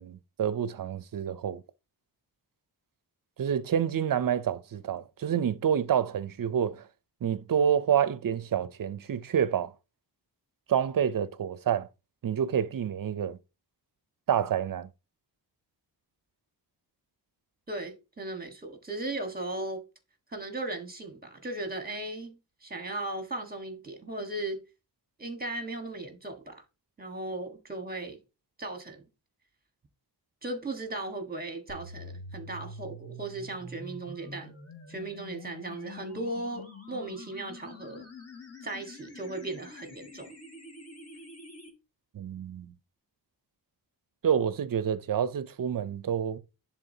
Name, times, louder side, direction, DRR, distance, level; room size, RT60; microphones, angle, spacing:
voice 1, 0.0-1.6 3.4-6.9 7.2-9.7 10.7-11.9 12.2-13.4 14.3-14.9 42.1-42.7 44.2-46.4, right 8 dB, 50° right, 0.5 m, -28 dB
voice 2, 17.7-19.8 20.3-24.6 25.2-26.6 27.0-28.2 28.6-29.0 30.4-34.5 34.9-38.0 38.6-40.3, right 2 dB, 20° right, 1.4 m, -37 dB
sound 1, 31.7-41.7, left 2 dB, 35° left, 1.7 m, -46 dB
11.0 x 3.6 x 2.7 m
wide cardioid pair, 145°, 43 cm